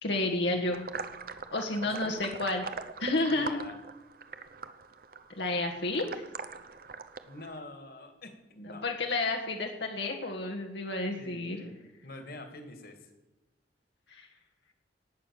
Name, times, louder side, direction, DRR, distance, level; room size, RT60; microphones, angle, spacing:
voice 1, 0.0-0.8 1.5-2.7 3.0-3.6 5.3-6.2 8.6-11.6 14.1-14.3, left 2 dB, 80° left, 2 dB, 1.7 m, -31 dB
sound 1, 0.7-7.6, right 4 dB, 55° right, 0.9 m, -42 dB
voice 2, 1.8-2.1 3.3-3.8 7.2-8.4 8.6-8.8 11.2-11.7 12.0-13.1, left 2 dB, 55° left, 6 dB, 2.4 m, -46 dB
18.5 x 8.2 x 6.6 m, 1.1 s
head